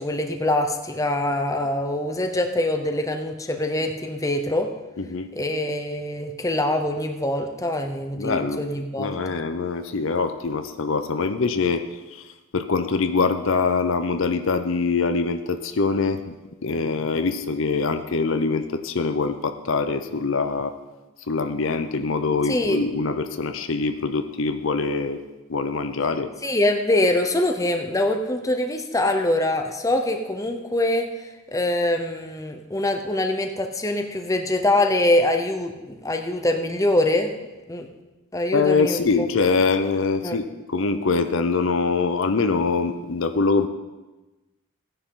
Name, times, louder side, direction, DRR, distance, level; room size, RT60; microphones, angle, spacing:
voice 1, 0.0-4.7 5.3-9.1 22.5-22.8 26.4-37.3 37.7-37.9 38.3-39.3 40.2-40.4, left 1 dB, 15° left, 5 dB, 0.8 m, -24 dB
voice 2, 5.0-5.3 8.2-8.6 9.0-11.9 12.1-12.2 12.5-16.3 16.6-20.8 21.3-25.2 25.5-26.3 38.5-43.7, left 4 dB, 60° left, 9 dB, 0.7 m, -24 dB
16.0 x 9.9 x 3.8 m, 1.1 s
head